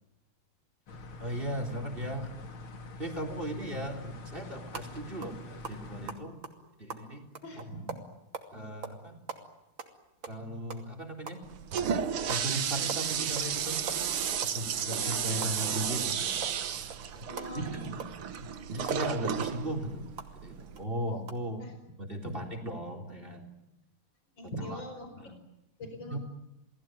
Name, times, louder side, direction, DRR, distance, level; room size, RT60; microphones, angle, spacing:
sound 1, 0.9-6.2, left 2 dB, 80° left, 3.1 m, -45 dB
voice 1, 1.2-2.3 3.0-6.4 6.8-7.3 7.6-7.7 8.5-9.2 10.3-11.4 12.3-13.8 14.4-16.4 17.1-17.3 17.5-17.8 18.4-20.1 20.4-21.6 22.0-23.5 24.4-24.8 25.1-25.4 26.1-26.2, right 1 dB, 25° right, 7 dB, 4.0 m, -37 dB
sound 2, 4.7-4.9 5.2-5.4 5.6-8.5 8.8-9.0 9.3-10.9 11.3-11.4 11.8-11.9 12.3-12.5 12.7-13.5 13.8-16.1 16.4-20.3 20.8-20.9 21.2-21.3, right 5 dB, 65° right, 3.5 m, -42 dB
voice 2, 7.4-8.1 17.2-18.1 21.6-21.7 22.2-22.3 24.4-25.1 25.8-26.2, equal, 60° left, 5 dB, 5.4 m, -41 dB
Toilet flush, 11.4-20.8, right 8 dB, 90° right, 2.2 m, -33 dB
29.0 x 19.5 x 9.2 m, 0.91 s
omnidirectional pair, 2.3 m